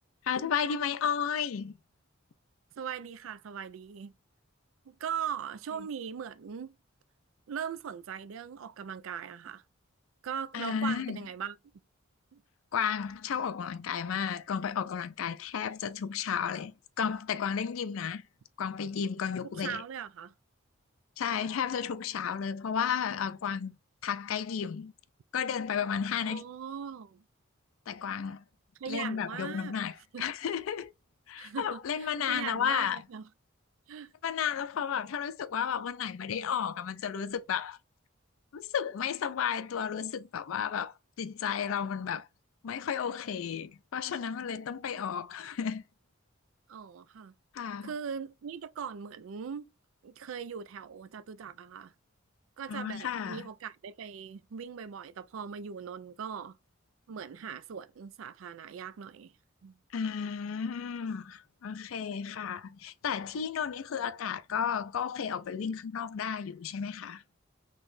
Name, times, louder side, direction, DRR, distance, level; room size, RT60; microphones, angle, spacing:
voice 1, 0.2-1.7 10.5-11.2 12.7-18.2 18.6-19.8 21.2-23.8 24.0-24.9 25.3-26.4 27.9-28.4 28.9-30.9 31.3-33.0 34.2-37.8 38.5-42.3 42.6-45.8 47.5-47.9 52.7-53.5 59.9-67.2, left 7 dB, 80° left, 0.4 m, -33 dB
voice 2, 2.8-4.1 4.9-6.8 7.5-9.6 10.2-11.6 12.3-12.4 19.4-20.3 26.2-27.2 28.8-29.8 30.1-30.3 31.4-33.2 33.9-34.1 46.7-47.3 47.8-49.7 50.0-51.9 52.6-56.6 57.1-59.3 59.6-59.8, right 7 dB, 75° right, 0.4 m, -40 dB
3.9 x 3.0 x 2.6 m
head